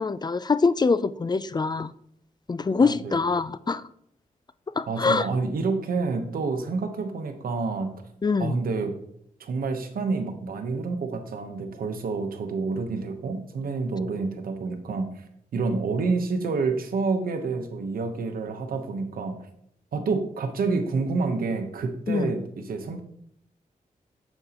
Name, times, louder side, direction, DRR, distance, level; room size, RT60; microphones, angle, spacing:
voice 1, 0.0-1.9 2.5-3.8 4.8-5.3 8.2-8.6 22.1-22.3, left 4 dB, 30° left, 0.4 m, -24 dB
voice 2, 2.8-3.1 4.9-7.9 8.4-8.9 9.4-15.1 15.5-19.4 19.9-23.0, right 4 dB, 90° right, 1.0 m, -28 dB
8.9 x 7.1 x 2.9 m
cardioid pair, 75°, 15 cm